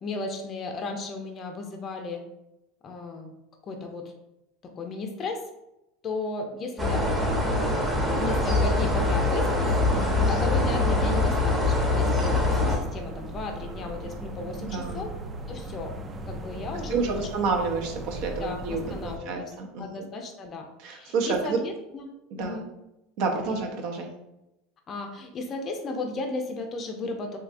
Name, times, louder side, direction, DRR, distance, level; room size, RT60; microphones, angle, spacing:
voice 1, 0.0-2.2 2.8-3.3 3.6-4.1 4.6-5.5 6.0-7.3 8.1-9.8 10.3-15.1 15.5-15.9 16.3-17.6 18.3-22.7 23.3-23.6 24.9-27.4, left 3 dB, 35° left, 4 dB, 0.5 m, -35 dB
sound 1, 6.8-12.8, left 2 dB, 10° right, 0.8 m, -24 dB
sound 2, 8.1-19.2, equal, 25° right, 0.4 m, -36 dB
voice 2, 9.9-10.3 14.7-15.0 16.9-20.0 20.8-21.6 22.3-22.6 23.2-24.1, right 4 dB, 65° right, 2 dB, 0.6 m, -29 dB
3.3 x 2.7 x 2.5 m, 0.91 s
supercardioid pair, 115°, 0 cm